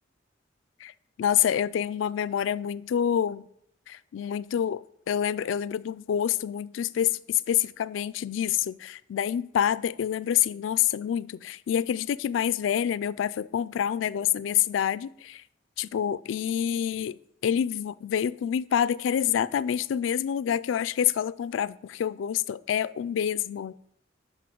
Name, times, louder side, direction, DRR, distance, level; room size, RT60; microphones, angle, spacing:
voice 1, 1.2-3.4 3.9-15.4 15.8-17.2 17.4-23.7, left 9 dB, 80° left, 18 dB, 0.3 m, -27 dB
6.1 x 5.4 x 5.9 m, 0.73 s
head